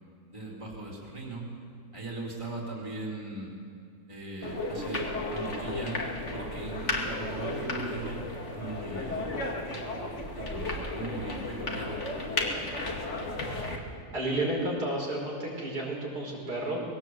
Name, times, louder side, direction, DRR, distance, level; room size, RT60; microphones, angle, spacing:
voice 1, 0.3-1.5 1.9-3.5 4.1-6.0 6.3-8.2 8.5-9.3 10.3-11.9, right 2 dB, 20° right, -3 dB, 3.6 m, -39 dB
sound 1, 4.4-13.8, left 2 dB, 45° left, 2.5 m, -34 dB
voice 2, 14.1-16.8, right 1 dB, 75° right, -3 dB, 5.4 m, -31 dB
20.5 x 17.5 x 8.0 m, 2.4 s
omnidirectional pair, 1.7 m